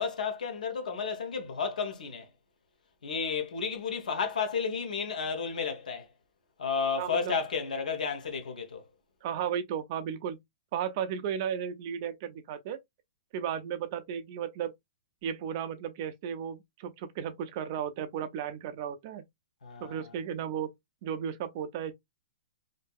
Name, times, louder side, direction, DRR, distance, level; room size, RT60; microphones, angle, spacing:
voice 1, 0.0-2.3 3.0-6.1 6.6-8.8 19.6-20.1, left 5 dB, 90° left, 1.0 m, -32 dB
voice 2, 7.0-7.4 9.2-10.4 10.7-12.8 13.3-14.7 15.2-19.2 19.8-20.7 21.0-21.9, right 8 dB, 25° right, 0.3 m, -34 dB
2.6 x 2.6 x 2.2 m
hypercardioid pair, 175°, 4 cm